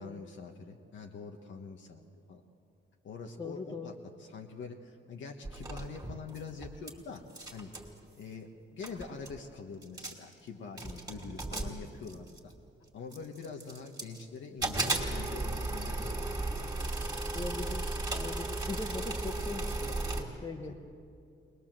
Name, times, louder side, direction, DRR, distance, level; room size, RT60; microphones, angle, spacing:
voice 1, 0.0-2.0 2.3-2.4 3.0-7.2 7.5-7.7 8.2-12.5 12.9-16.7 20.6-20.8, left 5 dB, 65° left, 2 dB, 1.3 m, -45 dB
voice 2, 3.4-3.9 17.3-17.9 18.1-20.8, left 3 dB, 20° left, 1 dB, 1.0 m, -40 dB
sound 1, 5.4-6.9 7.2-7.9 8.6-8.7 8.8-9.4 9.8-10.3 10.8-12.5 13.1-14.2 14.6-20.2, right 2 dB, 20° right, 2.6 m, -35 dB
22.0 x 20.0 x 7.5 m, 2.5 s
wide cardioid pair, 150°, 21 cm